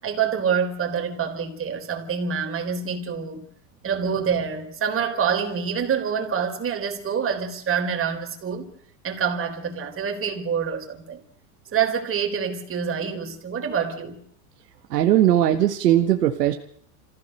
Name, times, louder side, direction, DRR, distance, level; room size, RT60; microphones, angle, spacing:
voice 1, 0.0-3.5 3.8-8.7 9.0-11.2 11.7-14.2, right 7 dB, 30° right, 4.3 m, -26 dB
voice 2, 14.9-16.5, right 12 dB, 90° right, 1.7 m, -19 dB
26.5 x 15.5 x 6.7 m
supercardioid pair, 115°, 47 cm